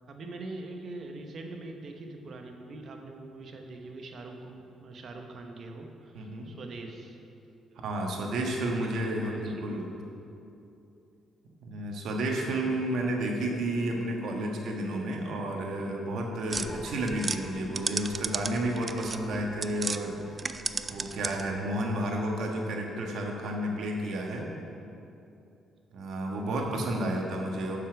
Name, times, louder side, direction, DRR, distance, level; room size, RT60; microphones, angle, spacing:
voice 1, 0.1-7.2 7.7-7.8 8.6-10.1 26.5-26.8, right 2 dB, 55° right, 3 dB, 1.1 m, -43 dB
voice 2, 6.1-6.5 7.8-9.9 11.6-20.1 20.9-24.5 25.9-27.8, right 1 dB, 75° right, 0 dB, 1.4 m, -31 dB
sound 1, 16.5-23.2, left 1 dB, 30° left, 1.2 m, -51 dB
sound 2, 16.5-20.0 20.3-21.6, right 4 dB, 30° right, 0.4 m, -34 dB
7.0 x 6.9 x 5.9 m, 2.7 s
cardioid pair, 90°, 0 cm